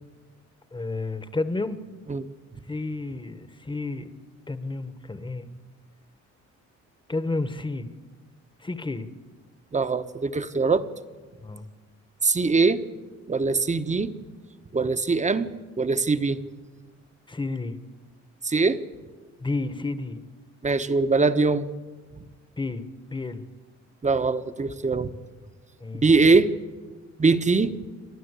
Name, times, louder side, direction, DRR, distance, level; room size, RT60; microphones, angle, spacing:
voice 1, 0.7-1.8 2.7-4.1 4.5-5.5 7.1-7.9 8.6-9.1 11.4-11.6 17.3-17.7 19.4-20.2 22.6-22.8 23.1-23.4 25.8-26.1, left 3 dB, 15° left, 12 dB, 1.2 m, -31 dB
voice 2, 9.7-10.9 12.2-12.8 13.3-14.1 14.7-16.4 18.4-18.8 20.6-21.7 24.0-25.1 26.0-26.5 27.2-27.8, right 4 dB, 25° right, 10 dB, 1.1 m, -22 dB
28.5 x 12.0 x 8.2 m, 1.4 s
cardioid pair, 90°, 30 cm